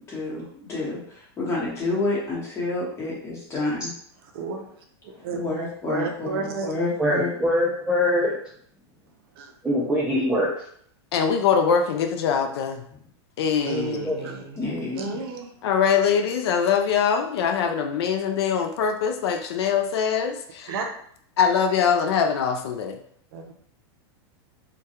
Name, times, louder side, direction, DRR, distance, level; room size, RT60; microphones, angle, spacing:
voice 1, 0.1-0.4 0.7-3.9 5.2-7.3 14.6-15.2, left 2 dB, 20° left, -6 dB, 1.0 m, -29 dB
voice 2, 4.3-4.8 5.2-6.7 9.4-9.5 13.6-14.6 15.0-15.5 20.7-20.9 23.3-23.5, right 4 dB, 60° right, 3 dB, 0.5 m, -32 dB
voice 3, 7.0-8.4 9.6-10.5 14.0-14.1, left 1 dB, 5° right, -6 dB, 0.3 m, -22 dB
voice 4, 11.1-12.8 13.4-14.3 15.6-20.7 21.4-23.0, left 7 dB, 70° left, 6 dB, 0.4 m, -23 dB
2.2 x 2.2 x 2.8 m, 0.63 s
supercardioid pair, 140°, 14 cm